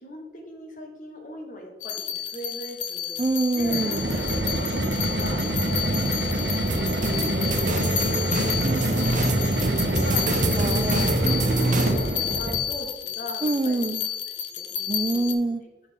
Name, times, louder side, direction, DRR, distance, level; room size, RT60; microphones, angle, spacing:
voice 1, 0.0-3.2 3.5-3.8 4.2-5.4 6.2-6.8 7.2-10.9 11.7-13.8 14.3-15.2, left 1 dB, 50° left, 2 dB, 1.4 m, -41 dB
sound 1, 1.8-15.3, left 8 dB, 85° left, 0.8 m, -31 dB
voice 2, 3.2-4.1 10.6-11.2 13.4-14.0 14.9-15.6, right 2 dB, 25° right, 10 dB, 0.3 m, -25 dB
sound 2, 3.6-12.7, right 1 dB, 75° right, 1.3 m, -26 dB
sound 3, 6.7-11.9, right 2 dB, 45° right, 0.8 m, -26 dB
6.8 x 6.5 x 3.7 m, 1.1 s
head